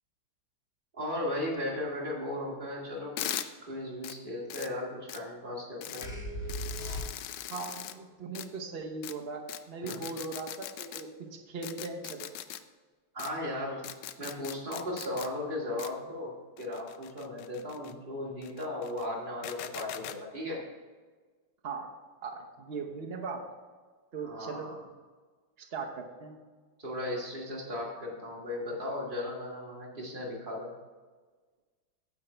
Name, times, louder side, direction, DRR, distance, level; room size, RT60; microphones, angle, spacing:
voice 1, 0.9-6.1 9.8-9.9 13.1-13.8 14.2-20.6 24.2-24.8 26.8-30.7, left 1 dB, 25° right, -3 dB, 2.0 m, -36 dB
sound 1, 3.2-3.5 4.0-4.1 4.5-4.7 5.1-5.2 5.8-6.1 6.5-7.9 8.3-8.5 9.0-9.1 9.5-9.6 9.9-11.0 11.6-12.6 13.2-13.3 13.8-15.3 15.8-15.9 16.6-17.9 18.4-19.1 19.4-20.2, left 12 dB, 80° left, 0.9 m, -40 dB
sound 2, 6.0-7.6, equal, 30° left, 1.5 m, -37 dB
voice 2, 7.5-12.3 21.6-21.9 22.2-23.4 24.1-24.7 25.6-26.4, right 4 dB, 90° right, 2 dB, 0.5 m, -39 dB
9.0 x 7.9 x 4.4 m, 1.4 s
omnidirectional pair, 2.3 m